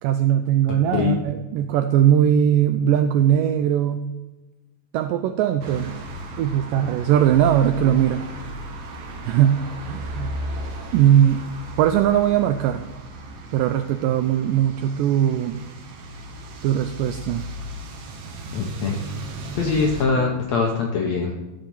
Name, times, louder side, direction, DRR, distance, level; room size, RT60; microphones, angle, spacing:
voice 1, 0.0-4.1 4.9-5.9 6.4-8.2 9.3-9.6 9.9-10.3 10.9-11.4 11.8-12.8 13.5-15.6 16.6-17.4, right 10 dB, 85° right, 9 dB, 1.9 m, -20 dB
voice 2, 0.7-1.2 18.5-19.0 19.5-21.3, left 4 dB, 70° left, 0 dB, 1.6 m, -23 dB
sound 1, 5.6-20.1, right 1 dB, 65° right, 2.7 m, -36 dB
14.5 x 5.1 x 7.1 m, 1.1 s
omnidirectional pair, 4.4 m